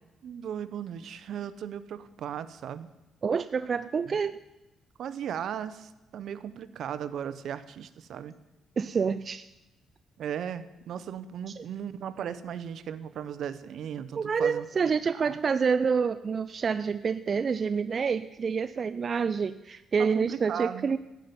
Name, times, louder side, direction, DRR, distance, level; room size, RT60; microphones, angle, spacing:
voice 1, 0.2-2.9 4.1-4.2 5.0-8.3 10.2-15.4 20.0-20.9, right 9 dB, 70° right, 14 dB, 0.8 m, -37 dB
voice 2, 3.2-4.4 8.8-9.5 11.5-11.7 14.2-21.0, right 6 dB, 45° right, 12 dB, 0.4 m, -27 dB
14.0 x 5.9 x 9.4 m, 1.0 s
cardioid pair, 90°, 0 cm